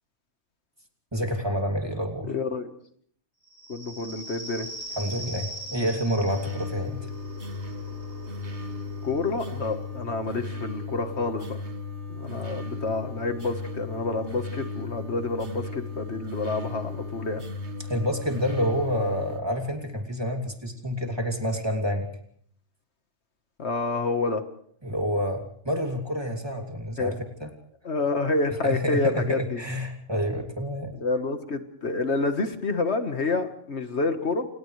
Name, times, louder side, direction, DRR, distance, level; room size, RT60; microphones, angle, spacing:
voice 1, 1.1-2.3 5.0-7.0 17.8-22.1 24.8-27.5 28.6-30.9, equal, 20° right, 2 dB, 2.8 m, -28 dB
voice 2, 2.3-2.7 3.7-4.7 9.0-11.6 12.1-17.4 23.6-24.4 27.0-27.2 27.8-29.6 30.9-34.5, left 3 dB, 60° left, 7 dB, 1.7 m, -28 dB
sound 1, 3.5-10.7, right 1 dB, 30° left, 5.7 m, -42 dB
sound 2, 6.3-19.4, left 3 dB, 65° right, 2.1 m, -36 dB
29.5 x 28.5 x 3.3 m, 0.62 s
omnidirectional pair, 1.3 m